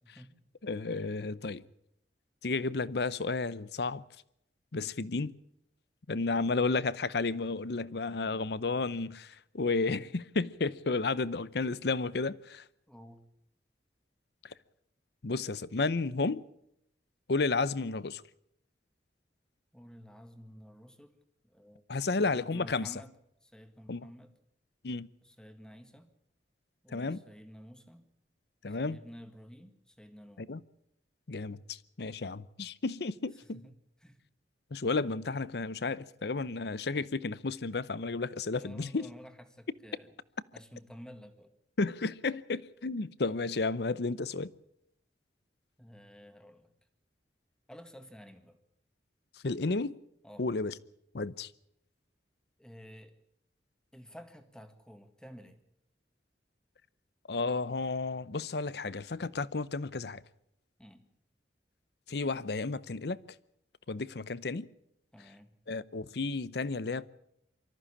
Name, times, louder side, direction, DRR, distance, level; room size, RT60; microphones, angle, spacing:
voice 1, 0.0-0.4 12.9-13.3 19.7-21.2 21.4-23.2 23.4-24.3 25.2-26.1 26.8-28.1 28.7-30.5 33.3-34.2 38.5-40.1 40.5-41.5 45.8-46.7 47.7-48.6 50.2-50.5 52.6-53.2 53.9-55.6 60.8-61.0 65.1-65.5, equal, 5° left, 1.8 m, -52 dB
voice 2, 0.6-1.6 2.4-4.0 4.7-5.3 6.1-12.6 15.2-16.4 17.3-18.2 21.9-22.9 23.9-24.1 24.8-25.1 26.9-27.2 28.6-29.0 30.5-30.6 31.3-33.6 34.7-39.1 41.8-44.5 49.4-50.0 50.4-50.7 51.1-51.5 57.3-60.2 62.1-63.2 63.9-64.7 65.7-67.1, left 3 dB, 65° left, 0.7 m, -32 dB
24.0 x 14.0 x 8.6 m
head